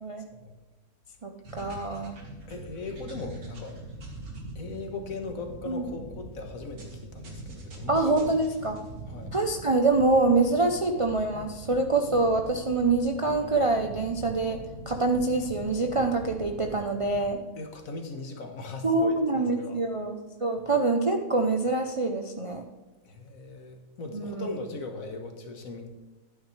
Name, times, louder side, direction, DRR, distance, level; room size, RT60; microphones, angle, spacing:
voice 1, 1.2-2.2 5.7-5.8 7.9-8.8 9.3-14.6 14.9-17.4 18.8-22.6 24.1-24.5, right 3 dB, 40° right, 3 dB, 0.5 m, -25 dB
sound 1, 1.4-17.3, right 2 dB, 85° right, 2.3 m, -43 dB
voice 2, 2.5-3.8 4.6-8.4 9.1-9.4 17.6-19.8 23.1-25.9, left 3 dB, 70° left, 4 dB, 1.7 m, -39 dB
11.5 x 9.2 x 3.3 m, 1.2 s
omnidirectional pair, 1.5 m